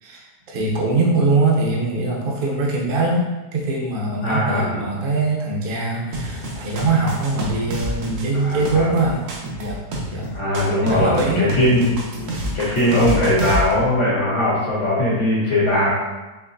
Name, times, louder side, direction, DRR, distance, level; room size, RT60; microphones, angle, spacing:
voice 1, 0.0-3.2 3.5-9.2 9.6-9.8 10.1-10.3 10.8-11.8, right 3 dB, 45° right, -2 dB, 0.7 m, -22 dB
voice 2, 4.2-4.9 8.3-8.9 10.3-12.0 12.5-15.9, left 1 dB, 80° left, -8 dB, 1.5 m, -19 dB
sound 1, 6.1-13.7, equal, 70° right, 1.3 m, -28 dB
5.0 x 3.1 x 2.6 m, 1.1 s
omnidirectional pair, 1.7 m